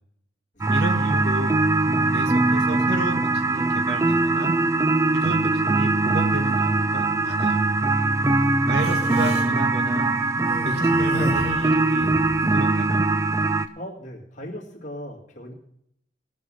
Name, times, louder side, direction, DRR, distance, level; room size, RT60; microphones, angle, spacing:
sound 1, 0.6-13.7, right 2 dB, 15° right, 0.4 m, -21 dB
voice 1, 0.7-1.6 2.1-4.5 5.1-7.6 8.7-10.1 10.6-12.1 12.4-13.0, right 1 dB, 60° right, 6 dB, 1.6 m, -31 dB
Human voice, 8.7-9.5 10.4-12.4, equal, 35° right, 2.4 m, -33 dB
voice 2, 13.8-15.5, equal, 40° left, -1 dB, 2.4 m, -39 dB
18.5 x 6.4 x 5.6 m, 0.73 s
head